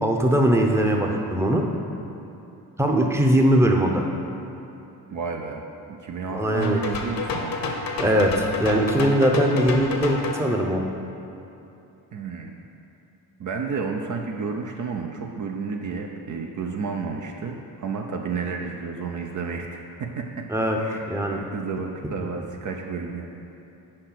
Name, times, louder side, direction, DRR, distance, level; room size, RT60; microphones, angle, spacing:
voice 1, 0.0-1.6 2.8-4.0 6.3-6.8 8.0-10.8 20.5-20.8 21.1-21.4, equal, 5° right, 1 dB, 0.7 m, -21 dB
voice 2, 5.1-7.6 12.1-12.5 13.4-20.5 20.7-21.0 21.3-23.4, right 5 dB, 45° right, 2 dB, 0.6 m, -31 dB
sound 1, 6.6-10.4, left 4 dB, 55° left, 0.9 m, -29 dB
4.9 x 4.3 x 5.9 m, 2.9 s
supercardioid pair, 60°, 42 cm